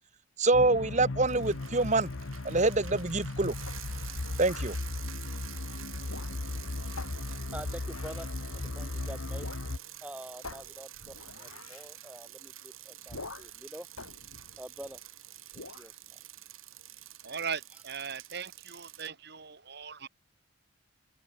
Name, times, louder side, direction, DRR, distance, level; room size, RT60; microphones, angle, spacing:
voice 1, 0.4-2.1 2.4-3.5 4.4-4.8, right 2 dB, 35° right, 1.2 m, -26 dB
sound 1, 0.5-9.8, left 2 dB, 65° left, 0.9 m, -37 dB
Bicycle, 1.2-19.1, right 12 dB, 75° right, 6.9 m, -48 dB
sound 2, 3.7-4.9 6.0-6.6 7.0-8.4 9.4-9.7 10.0-10.1 10.4-11.9 13.1-13.6 14.0-15.1 15.5-15.9, left 3 dB, 90° left, 6.4 m, -47 dB
voice 2, 7.0-8.3 8.5-9.5 10.0-13.9 14.6-15.0 15.5-15.9, right 1 dB, 5° right, 2.7 m, -46 dB
voice 3, 17.2-20.1, right 6 dB, 50° right, 2.1 m, -39 dB
head